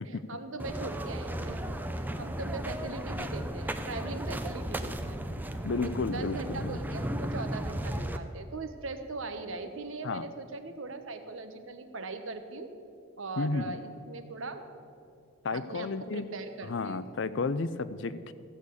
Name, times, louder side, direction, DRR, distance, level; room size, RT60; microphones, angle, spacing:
voice 1, 0.0-5.2 5.8-12.7 13.2-14.6 15.5-17.0, right 3 dB, 70° right, 8 dB, 1.1 m, -40 dB
sound 1, 0.6-8.2, right 1 dB, 10° right, 0.5 m, -35 dB
voice 2, 5.6-6.8 10.0-10.2 13.4-13.8 15.4-16.3 16.7-18.3, left 3 dB, 60° left, 14 dB, 0.5 m, -32 dB
15.0 x 6.6 x 8.3 m, 2.6 s
head